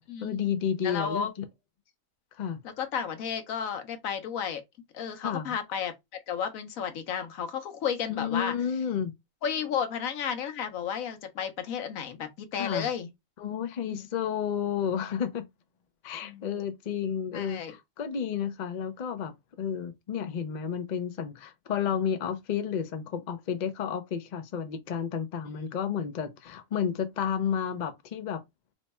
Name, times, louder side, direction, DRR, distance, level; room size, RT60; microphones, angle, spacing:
voice 1, 0.0-1.4 2.3-2.6 5.2-5.5 8.1-9.1 12.5-12.9 13.4-15.5 16.0-28.4, left 8 dB, 50° left, 0.5 m, -31 dB
voice 2, 0.8-1.3 2.6-4.6 4.9-5.9 6.3-8.5 9.4-13.1 13.8-14.1 16.2-16.6 17.3-17.8 25.5-25.8, left 7 dB, 85° left, 1.2 m, -33 dB
3.0 x 2.2 x 4.1 m
omnidirectional pair, 1.4 m